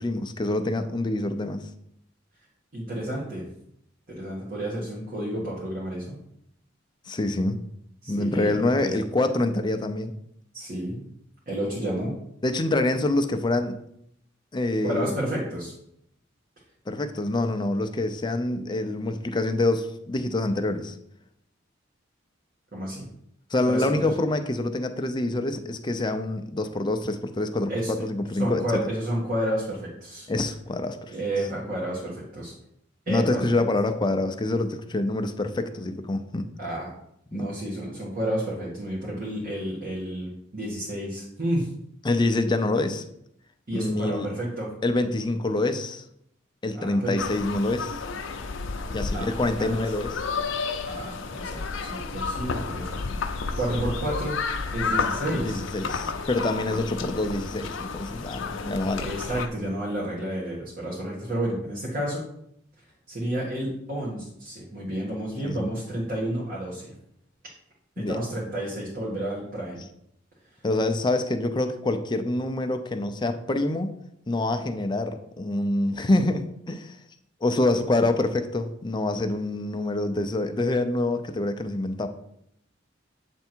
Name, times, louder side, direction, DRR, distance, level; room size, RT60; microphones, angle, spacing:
voice 1, 0.0-1.7 7.1-7.6 8.1-10.1 12.4-13.7 14.5-15.1 16.9-20.9 23.5-27.7 28.0-28.6 30.3-31.0 33.1-36.5 37.3-37.5 42.0-43.0 43.7-44.3 44.8-46.0 46.6-48.0 48.9-50.2 55.4-59.1 65.4-65.7 68.0-68.2 70.6-73.9 74.3-77.0 77.4-82.1, left 2 dB, 25° left, 7 dB, 0.5 m, -26 dB
voice 2, 2.7-3.4 4.1-6.2 8.0-9.0 10.5-11.0 11.5-12.2 14.8-15.7 22.7-23.1 23.7-24.1 27.7-28.1 28.4-30.3 31.1-32.5 33.1-33.4 36.6-36.9 37.3-41.7 43.7-44.7 46.7-47.2 49.1-49.7 50.9-53.0 53.6-54.4 54.7-55.6 56.7-56.8 59.0-62.2 63.1-66.9 68.0-69.8, right 1 dB, 50° right, -5 dB, 1.6 m, -31 dB
sound 1, 47.2-59.5, left 4 dB, 75° left, 0.6 m, -31 dB
7.8 x 3.5 x 4.4 m, 0.74 s
head